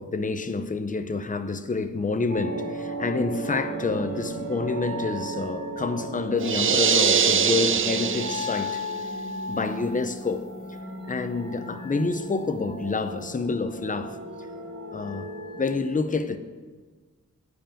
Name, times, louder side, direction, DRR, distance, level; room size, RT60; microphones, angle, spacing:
voice 1, 0.0-8.8 9.5-10.5 11.1-14.2 14.9-16.4, left 4 dB, 25° left, 0.6 m, -28 dB
sound 1, 2.3-15.8, right 1 dB, 85° right, 2.6 m, -35 dB
sound 2, 6.4-8.9, right 7 dB, 40° right, 0.4 m, -23 dB
10.0 x 5.0 x 7.6 m
wide cardioid pair, 95°, 32 cm